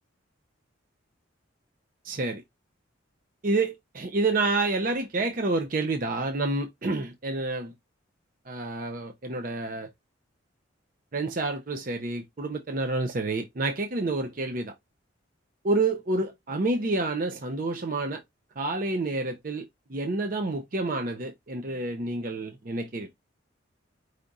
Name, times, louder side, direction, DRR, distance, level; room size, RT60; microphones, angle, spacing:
voice 1, 2.0-2.4 3.4-7.7 8.5-9.9 11.1-14.7 15.6-18.2 18.6-19.6 19.9-23.2, right 2 dB, 45° right, 0.6 m, -28 dB
5.0 x 2.4 x 3.9 m
head